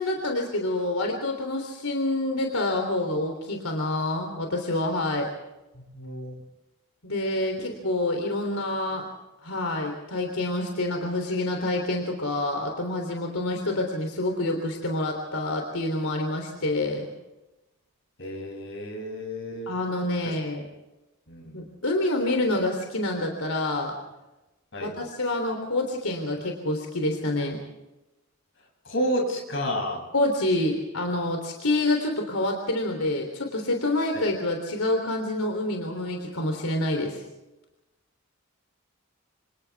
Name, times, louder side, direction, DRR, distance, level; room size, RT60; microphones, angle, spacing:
voice 1, 0.0-5.3 7.0-9.0 9.4-17.1 19.7-20.6 21.5-23.9 24.8-27.6 30.1-37.2, left 2 dB, 85° left, 3 dB, 3.4 m, -27 dB
voice 2, 5.7-6.4 7.6-7.7 18.2-19.7 20.2-20.3 21.3-21.6 24.7-24.9 28.8-30.0 34.1-34.2, equal, 55° left, 0 dB, 7.8 m, -31 dB
28.0 x 27.5 x 3.6 m, 1.0 s
head